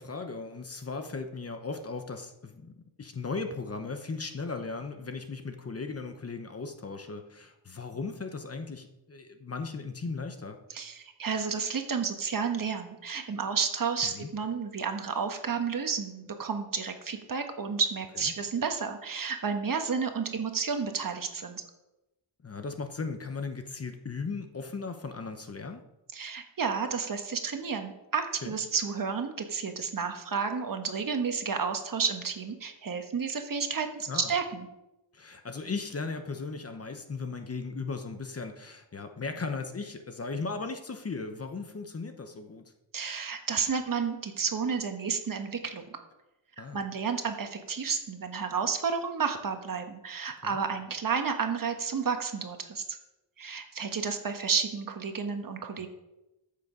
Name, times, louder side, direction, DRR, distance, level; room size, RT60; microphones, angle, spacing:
voice 1, 0.0-10.6 14.0-14.3 22.4-25.8 28.4-28.6 34.1-34.3 35.1-42.6 46.6-46.8 50.4-50.6 55.7-55.9, left 4 dB, 30° left, 7 dB, 0.9 m, -37 dB
voice 2, 10.7-21.6 26.1-34.7 42.9-45.9 46.7-53.0 53.4-55.9, right 5 dB, 45° right, 6 dB, 1.3 m, -31 dB
13.5 x 6.9 x 5.0 m, 0.95 s
wide cardioid pair, 150°, 46 cm